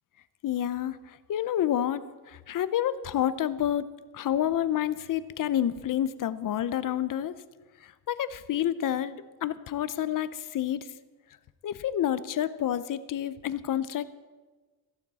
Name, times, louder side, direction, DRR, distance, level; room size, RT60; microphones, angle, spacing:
voice 1, 0.4-1.0 1.3-2.0 2.5-3.9 4.1-7.3 8.1-9.2 9.4-10.8 11.6-14.1, left 11 dB, 55° left, 15 dB, 0.7 m, -28 dB
14.5 x 12.5 x 4.1 m, 1.3 s
cardioid pair, 135°, 38 cm